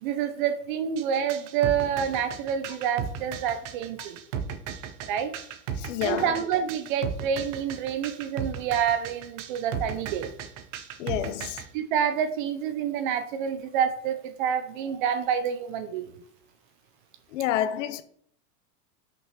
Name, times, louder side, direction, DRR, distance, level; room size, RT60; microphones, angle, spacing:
voice 1, 0.0-4.2 5.1-5.3 6.0-10.3 11.7-16.1, right 8 dB, 30° right, 0.6 m, -28 dB
sound 1, 1.0-11.7, right 8 dB, 50° right, 1.1 m, -35 dB
voice 2, 5.7-6.3 11.0-11.6 17.3-18.0, left 11 dB, 50° left, 0.8 m, -29 dB
6.3 x 6.0 x 5.9 m
supercardioid pair, 165°, 48 cm